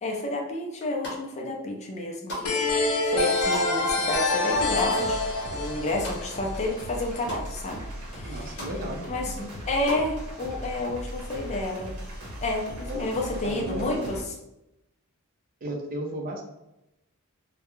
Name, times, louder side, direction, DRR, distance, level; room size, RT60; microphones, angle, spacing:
voice 1, 0.0-5.2 5.5-7.8 8.1-8.6 9.1-11.9 12.4-14.2, left 2 dB, 30° left, 1 dB, 0.4 m, -30 dB
sound 1, 0.7-1.5 1.8-6.6 6.9-7.5 7.9-8.0 8.2-8.7 9.2-10.1, left 1 dB, 50° left, 0.8 m, -38 dB
sound 2, 2.4-7.1, left 2 dB, 85° left, 0.6 m, -26 dB
sound 3, 4.5-14.2, equal, 80° right, 0.8 m, -38 dB
voice 2, 8.2-9.0 12.8-13.0 13.4-14.1 15.6-16.4, equal, 40° right, 1 dB, 0.4 m, -34 dB
2.3 x 2.1 x 2.9 m, 0.90 s
head